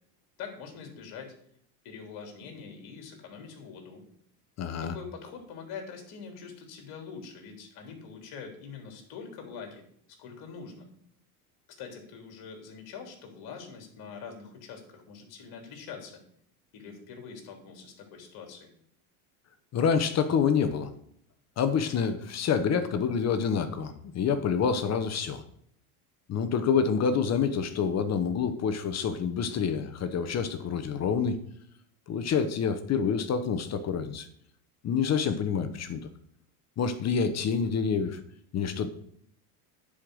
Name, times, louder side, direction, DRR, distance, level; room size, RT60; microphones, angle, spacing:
voice 1, 0.4-1.3 1.8-4.1 4.8-9.8 10.2-10.9 11.8-16.2 16.7-18.7, left 6 dB, 55° left, 3 dB, 3.3 m, -44 dB
voice 2, 4.6-5.0 19.7-20.9 21.6-25.4 26.3-31.4 32.1-34.3 34.8-36.0 36.8-38.2 38.5-38.9, left 6 dB, 35° left, 10 dB, 1.1 m, -27 dB
10.0 x 5.1 x 6.3 m, 0.67 s
supercardioid pair, 100°, 44 cm